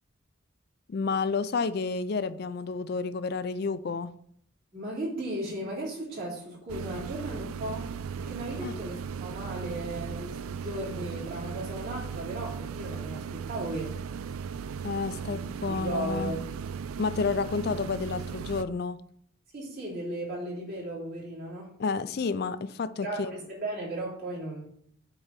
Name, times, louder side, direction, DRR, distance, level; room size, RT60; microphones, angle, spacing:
voice 1, 0.9-4.1 8.6-8.7 14.8-16.4 17.0-19.0 21.8-23.3, left 4 dB, 50° left, 0.4 m, -30 dB
voice 2, 4.7-7.9 8.2-14.0 15.1-15.3 15.6-16.5 19.5-21.7 23.0-24.6, right 1 dB, 45° right, 3.4 m, -36 dB
sound 1, 6.7-18.7, right 6 dB, 80° right, 0.4 m, -37 dB
7.9 x 3.8 x 5.8 m
head